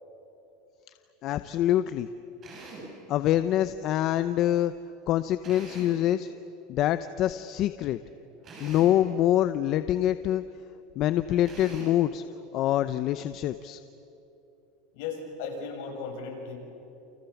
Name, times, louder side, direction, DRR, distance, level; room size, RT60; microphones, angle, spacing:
voice 1, 1.2-2.1 3.1-4.7 5.1-6.3 6.7-8.0 8.6-10.4 11.0-12.2 12.5-13.8, left 12 dB, 40° left, 12 dB, 0.7 m, -25 dB
Drill, 2.4-3.0 5.4-6.1 8.4-9.1 11.4-12.1, right 2 dB, 30° right, 7.6 m, -44 dB
voice 2, 14.9-16.6, left 5 dB, 65° left, 1 dB, 7.3 m, -36 dB
29.5 x 28.0 x 7.2 m, 2.9 s
supercardioid pair, 155°, 0 cm